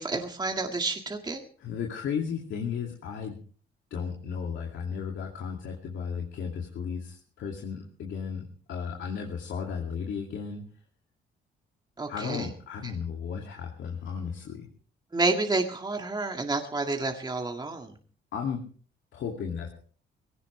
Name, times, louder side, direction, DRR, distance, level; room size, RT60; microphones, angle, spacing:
voice 1, 0.0-1.4 12.0-12.5 15.1-17.9, right 3 dB, 20° right, 3 dB, 2.0 m, -29 dB
voice 2, 1.6-3.4 3.9-10.6 12.1-14.7 18.3-18.6 19.1-19.7, left 6 dB, 75° left, 0 dB, 2.5 m, -34 dB
19.5 x 17.0 x 3.3 m, 0.43 s
cardioid pair, 90°, 20 cm